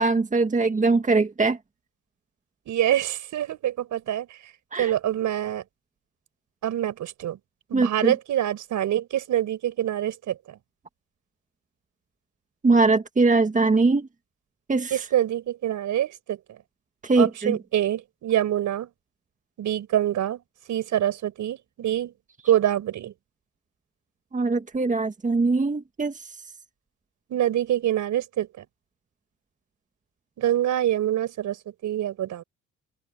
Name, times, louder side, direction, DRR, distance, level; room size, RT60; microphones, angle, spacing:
voice 1, 0.0-1.6 4.7-4.9 7.7-8.1 12.6-14.1 14.7-15.0 17.0-17.6 24.3-26.1, right 3 dB, 25° right, 1.9 m, -21 dB
voice 2, 2.7-4.4 4.8-5.6 6.6-7.4 7.7-10.6 14.9-16.6 17.2-18.9 19.6-20.4 20.7-22.1 22.5-23.1 27.3-28.6 30.4-31.6 31.8-32.4, right 12 dB, 75° right, 5.0 m, -25 dB
cardioid pair, 90°, 30 cm